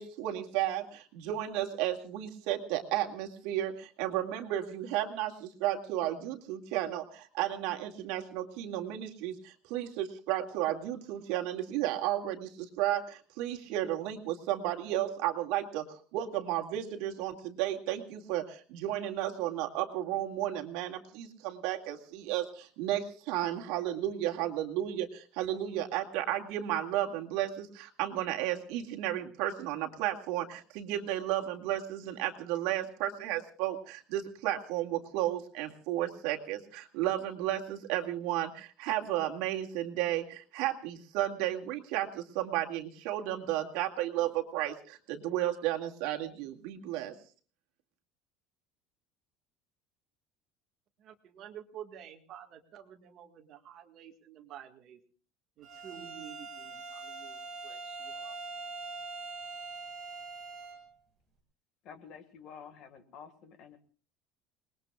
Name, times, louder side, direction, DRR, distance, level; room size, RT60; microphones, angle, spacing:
voice 1, 0.0-47.2, right 13 dB, 65° right, 2 dB, 2.2 m, -33 dB
voice 2, 51.0-55.0 55.6-58.4, right 10 dB, 35° right, 5 dB, 1.7 m, -50 dB
Bowed string instrument, 55.6-60.9, right 4 dB, 15° right, 4.9 m, -43 dB
voice 3, 61.8-63.8, left 7 dB, 40° left, 9 dB, 1.8 m, -50 dB
30.0 x 20.5 x 2.4 m, 0.39 s
cardioid pair, 180°, 0 cm